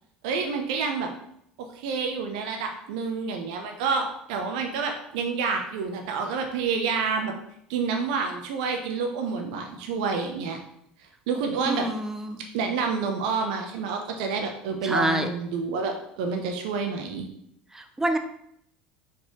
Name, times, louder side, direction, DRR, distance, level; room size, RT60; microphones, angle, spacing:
voice 1, 0.2-1.1 1.6-7.3 7.7-10.6 11.3-11.9 12.5-17.3, right 5 dB, 60° right, 4 dB, 0.9 m, -28 dB
voice 2, 11.6-12.4 14.8-15.3 17.7-18.2, right 1 dB, 10° right, 6 dB, 0.7 m, -27 dB
5.5 x 4.2 x 4.9 m, 0.72 s
figure-of-eight pair, 70°, 5 cm